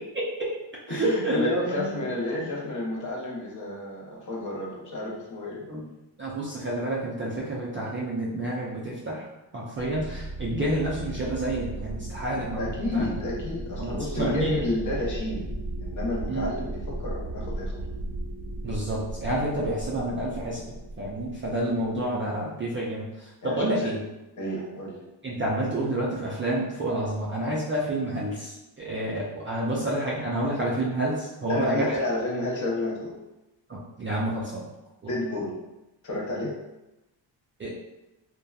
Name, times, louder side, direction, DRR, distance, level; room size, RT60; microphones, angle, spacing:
voice 1, 0.1-0.5 0.9-2.1 2.3-2.5 5.7-5.8 6.2-9.2 9.5-13.0 13.8-14.6 16.3-16.6 18.6-20.6 21.0-23.0 23.4-24.0 25.2-31.9 33.7-34.6 35.0-35.1 37.6-37.7, right 1 dB, 30° right, -6 dB, 0.4 m, -29 dB
voice 2, 0.9-5.7 12.6-15.5 15.8-17.8 21.7-21.9 23.4-23.9 24.4-25.0 31.5-33.2 35.1-35.6 36.0-36.6, left 1 dB, 40° left, -3 dB, 0.6 m, -31 dB
sound 1, 9.7-22.0, right 2 dB, 60° left, 1.0 m, -36 dB
2.7 x 2.2 x 2.3 m, 0.97 s
wide cardioid pair, 150°, 45 cm